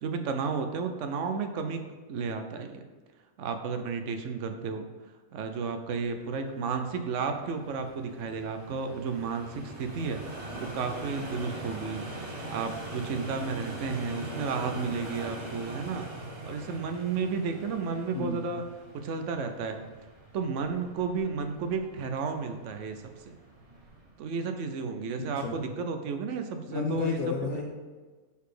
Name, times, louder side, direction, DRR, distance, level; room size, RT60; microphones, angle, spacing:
voice 1, 0.0-1.8 2.1-2.9 3.4-4.8 5.3-16.1 16.4-18.6 18.9-19.8 20.3-23.4 24.2-27.2, right 5 dB, 65° right, 7 dB, 0.9 m, -32 dB
sound 1, 5.9-24.2, right 1 dB, 30° right, 0.7 m, -43 dB
voice 2, 18.1-18.4 25.2-25.6 26.7-27.6, left 5 dB, 80° left, -1 dB, 1.1 m, -31 dB
5.5 x 4.1 x 4.9 m, 1.4 s
omnidirectional pair, 1.5 m